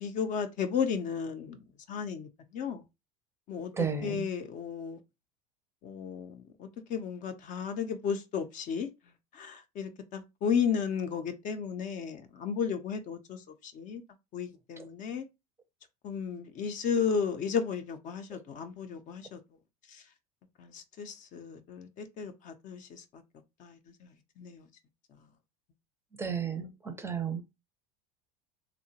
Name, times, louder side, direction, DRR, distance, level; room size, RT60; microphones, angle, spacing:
voice 1, 0.0-2.8 3.5-5.0 5.8-8.9 9.3-14.0 14.3-15.2 16.0-19.4 19.9-20.0 20.6-23.2 23.6-24.7, left 6 dB, 45° left, 0.5 m, -34 dB
voice 2, 3.7-4.3 14.8-14.9 18.3-18.4 26.2-27.4, right 6 dB, 15° right, 0.5 m, -33 dB
2.9 x 2.1 x 2.7 m
supercardioid pair, 100°, 19 cm